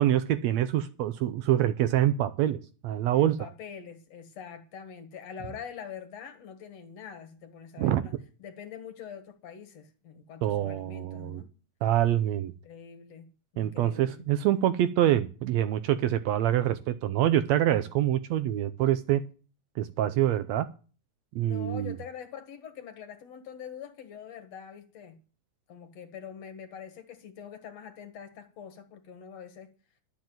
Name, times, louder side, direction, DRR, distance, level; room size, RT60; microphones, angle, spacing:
voice 1, 0.0-2.6 2.8-3.4 7.8-8.0 10.4-11.4 11.8-12.5 13.6-19.2 19.8-20.7 21.4-21.9, right 12 dB, 75° right, 1.8 m, -25 dB
voice 2, 3.1-8.1 8.4-11.5 12.6-14.3 21.4-25.2 25.7-29.7, left 8 dB, 60° left, 2.7 m, -44 dB
11.5 x 7.4 x 7.7 m
omnidirectional pair, 3.5 m